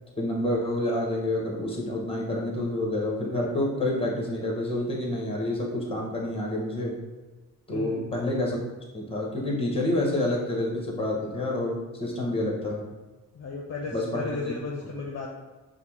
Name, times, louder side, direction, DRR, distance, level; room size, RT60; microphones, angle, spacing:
voice 1, 0.2-6.9 7.7-8.6 8.9-12.8 13.9-14.4, left 1 dB, 15° left, -3 dB, 1.4 m, -28 dB
voice 2, 7.7-8.1 13.3-15.3, left 4 dB, 50° left, -1 dB, 0.7 m, -34 dB
5.6 x 2.4 x 3.5 m, 1.2 s
cardioid pair, 80°, 34 cm